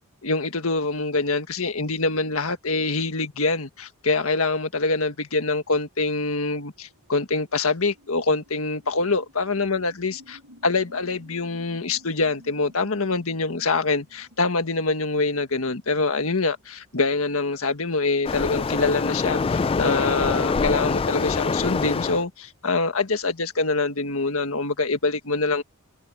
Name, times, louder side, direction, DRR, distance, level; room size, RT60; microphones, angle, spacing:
voice 1, 0.2-25.6, left 3 dB, 70° left, 1.7 m, -25 dB
sound 1, 5.6-17.1, equal, 85° right, 5.6 m, -53 dB
Waves surf, 18.2-22.2, left 4 dB, 25° left, 0.3 m, -24 dB
head